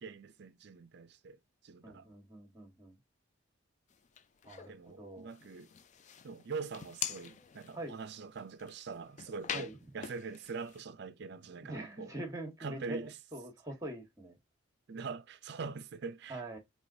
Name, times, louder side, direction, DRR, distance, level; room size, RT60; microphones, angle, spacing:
voice 1, 0.0-1.4 1.6-2.1 4.7-5.7 6.2-12.1 12.6-13.1 14.9-16.4, right 4 dB, 55° right, 0.4 m, -43 dB
voice 2, 1.8-3.0 4.4-5.3 7.7-8.0 9.5-9.8 11.6-14.4 16.3-16.6, right 1 dB, 15° right, 1.2 m, -44 dB
sound 1, 3.9-4.8 5.3-10.8, left 8 dB, 35° left, 0.3 m, -44 dB
4.8 x 2.9 x 2.6 m
head